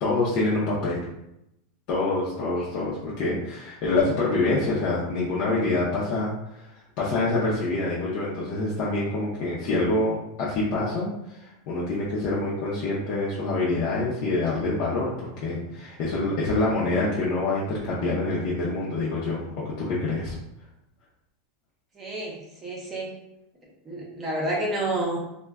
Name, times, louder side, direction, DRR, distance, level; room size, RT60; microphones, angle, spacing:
voice 1, 0.0-1.1 1.9-6.7 7.0-20.4, left 2 dB, 45° left, -7 dB, 0.6 m, -26 dB
voice 2, 22.0-23.1 23.9-25.2, right 1 dB, 15° right, -3 dB, 0.6 m, -29 dB
2.2 x 2.1 x 3.4 m, 0.84 s
supercardioid pair, 165°, 0 cm